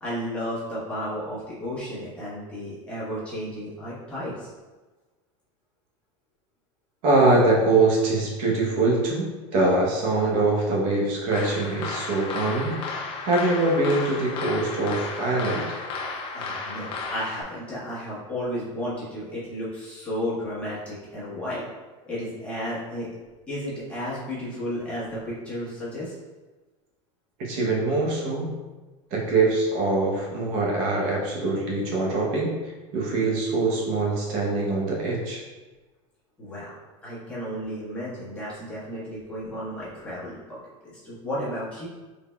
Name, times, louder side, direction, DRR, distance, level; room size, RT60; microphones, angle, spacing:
voice 1, 0.0-4.5 16.3-21.6 22.0-23.1 23.5-26.1 36.4-36.8 37.0-40.6 40.8-41.9, equal, 5° left, -10 dB, 1.2 m, -33 dB
voice 2, 7.0-12.8 13.2-15.8 27.4-28.5 29.1-35.4, right 2 dB, 55° right, -3 dB, 0.8 m, -23 dB
sound 1, 11.3-17.4, left 4 dB, 35° left, 0.4 m, -33 dB
3.9 x 3.3 x 2.2 m, 1.2 s
supercardioid pair, 155°, 16 cm